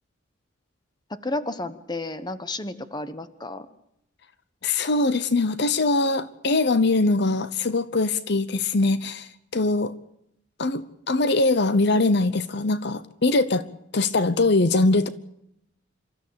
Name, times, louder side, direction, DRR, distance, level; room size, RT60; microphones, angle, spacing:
voice 1, 1.1-3.7, left 2 dB, 20° left, 12 dB, 1.1 m, -32 dB
voice 2, 4.6-9.9 10.6-13.7 13.9-15.1, left 2 dB, 60° left, 14 dB, 0.9 m, -22 dB
27.0 x 13.0 x 8.7 m, 0.77 s
head